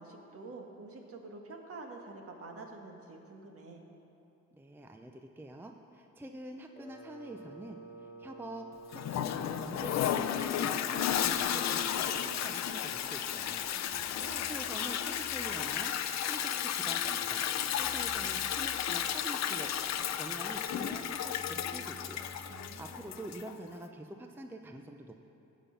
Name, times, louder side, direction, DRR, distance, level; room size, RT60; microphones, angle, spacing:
voice 1, 0.0-3.8 13.7-14.5 22.5-23.1, right 3 dB, 50° right, 2 dB, 1.6 m, -48 dB
voice 2, 4.5-25.1, right 1 dB, 5° right, 5 dB, 0.5 m, -46 dB
Wind instrument woodwind instrument, 6.7-12.5, right 3 dB, 10° left, 1.2 m, -50 dB
Toilet flush, 8.9-23.5, left 10 dB, 65° left, 0.6 m, -33 dB
sound 1, 13.9-23.0, left 2 dB, 25° right, 1.3 m, -55 dB
16.0 x 5.4 x 5.8 m, 2.8 s
cardioid pair, 90°, 30 cm